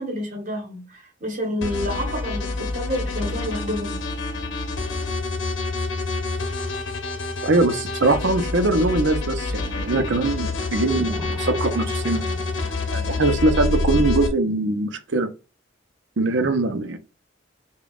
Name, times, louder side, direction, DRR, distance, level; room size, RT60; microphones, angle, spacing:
voice 1, 0.0-4.0, equal, 40° right, 1.0 m, -29 dB
sound 1, 1.6-14.3, left 3 dB, 75° left, 0.9 m, -28 dB
voice 2, 7.4-12.2 12.9-15.3 16.2-17.0, right 2 dB, 65° right, 0.6 m, -22 dB
sound 2, 8.7-14.3, equal, 10° left, 0.7 m, -33 dB
5.0 x 2.3 x 2.4 m
head